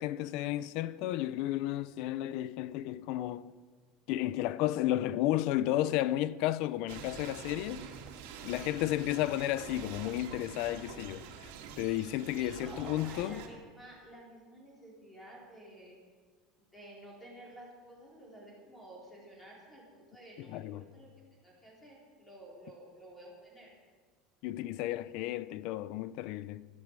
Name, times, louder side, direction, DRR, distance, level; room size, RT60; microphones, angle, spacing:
voice 1, 0.0-3.5 4.1-7.9 8.4-11.5 11.8-13.4 20.5-20.9 24.4-26.7, left 14 dB, 50° left, 0.5 m, -33 dB
sound 1, 6.9-13.5, right 7 dB, 80° right, 2.5 m, -46 dB
voice 2, 12.3-16.0 16.7-23.7, right 1 dB, 10° left, 4.1 m, -52 dB
13.0 x 11.5 x 8.9 m
cardioid pair, 180°, 0 cm